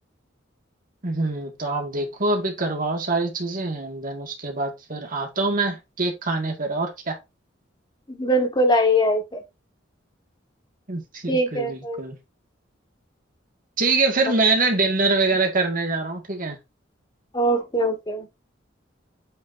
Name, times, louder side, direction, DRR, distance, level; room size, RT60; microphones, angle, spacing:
voice 1, 1.0-7.2 10.9-12.2 13.8-16.6, right 3 dB, 45° right, 2.1 m, -24 dB
voice 2, 8.1-9.4 11.3-12.0 17.3-18.3, equal, 25° left, 1.5 m, -22 dB
8.8 x 4.6 x 2.7 m
head